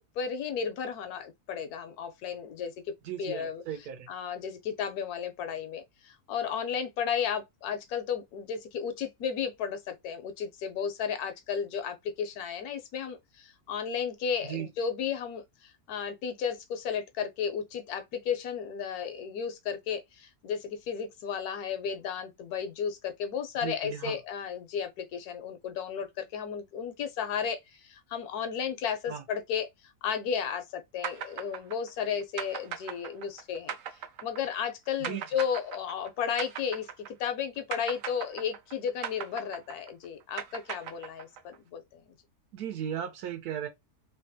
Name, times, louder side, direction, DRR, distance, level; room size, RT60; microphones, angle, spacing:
voice 1, 0.0-2.7 3.2-3.6 4.1-29.7 30.0-33.7 34.2-42.0, left 7 dB, 80° left, 1.1 m, -34 dB
voice 2, 3.0-4.1 14.4-14.7 23.6-24.2 29.1-29.2 35.0-35.2 42.5-43.7, right 9 dB, 85° right, 1.3 m, -36 dB
sound 1, 31.0-37.4 37.7-41.6, right 8 dB, 70° right, 0.9 m, -38 dB
3.3 x 2.2 x 2.6 m
omnidirectional pair, 1.6 m